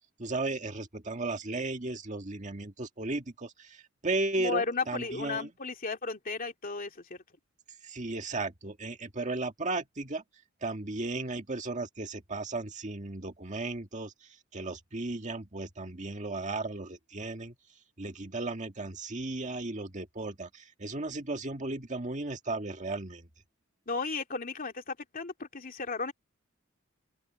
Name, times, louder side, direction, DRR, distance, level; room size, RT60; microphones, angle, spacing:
voice 1, 0.2-5.5 7.8-10.2 10.6-17.6 18.0-23.3, right 2 dB, 35° right, 1.9 m, -35 dB
voice 2, 4.4-7.2 23.9-26.1, left 4 dB, 45° left, 2.6 m, -34 dB
open air
head